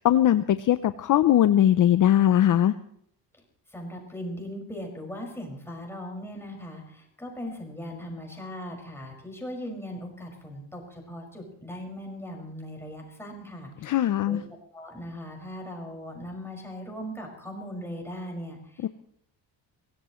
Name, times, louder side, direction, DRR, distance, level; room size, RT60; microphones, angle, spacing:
voice 1, 0.0-2.7 13.8-14.4 18.8-18.9, left 11 dB, 45° left, 12 dB, 0.7 m, -20 dB
voice 2, 3.7-14.0 14.3-14.4 14.7-18.9, equal, 5° left, 0 dB, 5.6 m, -39 dB
23.5 x 17.0 x 3.1 m, 0.69 s
cardioid pair, 130°, 43 cm